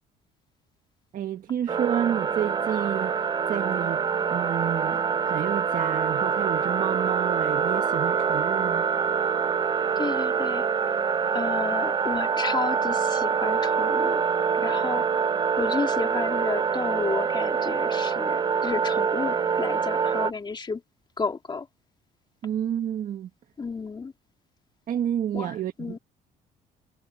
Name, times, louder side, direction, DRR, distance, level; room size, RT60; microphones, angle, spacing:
voice 1, 1.1-3.2 3.5-8.9 22.4-23.3 24.9-26.0, right 10 dB, 55° right, 1.5 m, -30 dB
sound 1, 1.7-20.3, right 6 dB, 25° right, 0.5 m, -25 dB
voice 2, 10.0-10.7 11.3-14.2 14.5-15.1 15.6-20.8 21.2-21.7 23.6-24.1 25.3-26.0, left 4 dB, 25° left, 2.7 m, -32 dB
cardioid pair, 110°, 17 cm